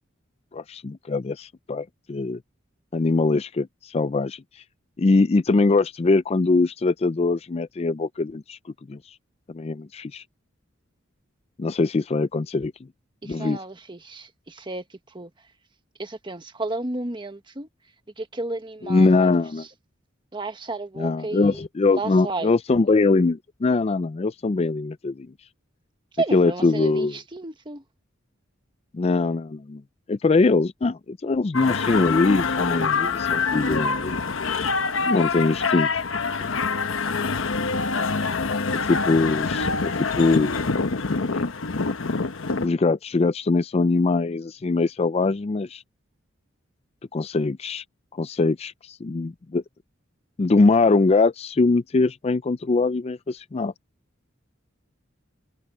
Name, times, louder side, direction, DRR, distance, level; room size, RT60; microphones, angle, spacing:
voice 1, 0.5-2.4 2.9-4.4 5.0-8.6 8.9-9.0 9.5-10.2 11.6-12.7 13.2-13.6 18.8-19.6 21.0-25.3 26.3-27.2 28.9-29.8 30.1-34.2 35.1-35.9 36.4-36.5 38.7-40.6 42.6-45.8 47.1-47.8 48.2-49.6 50.4-53.7, left 3 dB, 30° left, 0.4 m, -22 dB
voice 2, 13.2-14.8 15.1-15.3 16.0-17.7 18.2-19.3 19.6-19.7 20.3-21.6 21.9-22.5 26.2-27.8, right 2 dB, 25° right, 1.4 m, -32 dB
sound 1, 31.5-42.7, left 4 dB, 85° left, 1.0 m, -25 dB
head